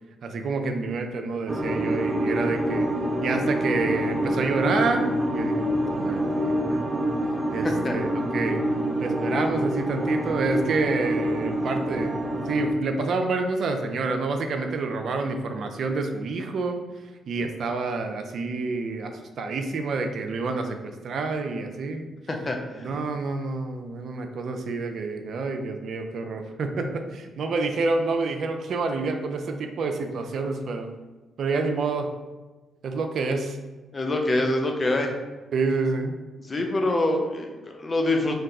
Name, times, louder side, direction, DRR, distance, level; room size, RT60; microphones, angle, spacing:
voice 1, 0.2-2.9 3.2-6.8 7.5-8.6 9.0-12.2 12.5-16.8 17.3-22.1 22.7-30.9 31.4-32.1 32.8-33.6 35.5-36.2, right 3 dB, 65° right, 5 dB, 0.3 m, -28 dB
sound 1, 1.5-12.7, right 1 dB, 15° right, 0.5 m, -26 dB
voice 2, 22.3-22.9 33.9-35.1 36.5-38.4, left 2 dB, 40° left, 3 dB, 0.5 m, -25 dB
2.6 x 2.2 x 3.8 m, 1.2 s
hypercardioid pair, 45°, 0 cm